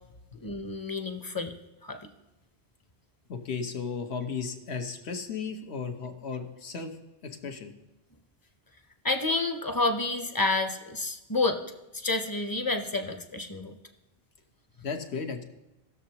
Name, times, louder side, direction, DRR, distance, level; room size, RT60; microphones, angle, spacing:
voice 1, 0.4-1.5 1.8-2.0 9.0-11.6 11.9-13.7, left 3 dB, 25° left, 7 dB, 0.6 m, -29 dB
voice 2, 3.3-7.0 7.2-7.7 14.8-15.4, left 5 dB, 80° left, 5 dB, 1.2 m, -35 dB
18.0 x 6.8 x 2.9 m, 0.97 s
omnidirectional pair, 1.1 m